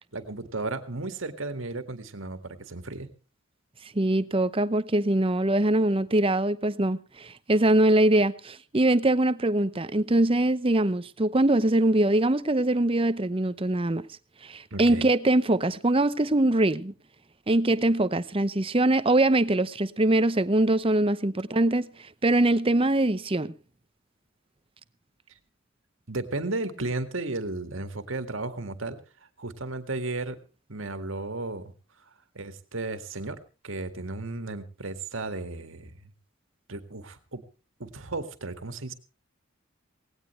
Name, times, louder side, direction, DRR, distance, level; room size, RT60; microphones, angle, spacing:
voice 1, 0.1-3.1 14.7-15.1 26.1-29.0 29.4-30.4 30.7-31.7 32.4-33.4 33.6-36.1 36.7-37.4 37.8-38.9, right 2 dB, 70° right, 1.9 m, -34 dB
voice 2, 3.9-14.0 14.4-16.9 17.5-21.9 22.2-23.5, right 1 dB, 25° right, 0.8 m, -23 dB
18.5 x 17.0 x 3.2 m
head